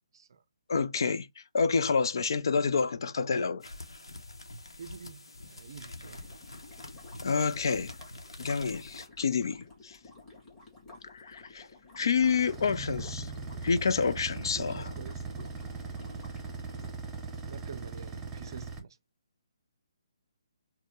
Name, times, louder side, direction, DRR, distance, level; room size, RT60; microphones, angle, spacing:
voice 1, 0.7-3.7 7.2-7.9 8.4-10.0 11.1-11.7 12.0-13.3 13.6-14.9, left 5 dB, 55° left, 0.4 m, -28 dB
sound 1, 3.6-9.1, left 2 dB, 75° left, 0.9 m, -46 dB
voice 2, 4.8-6.3 14.5-15.9 17.5-19.0, right 6 dB, 55° right, 0.5 m, -48 dB
sound 2, 6.0-16.9, left 3 dB, 10° left, 1.7 m, -53 dB
sound 3, 12.2-18.8, right 4 dB, 15° right, 0.9 m, -40 dB
4.2 x 2.1 x 3.1 m
figure-of-eight pair, 140°, 3 cm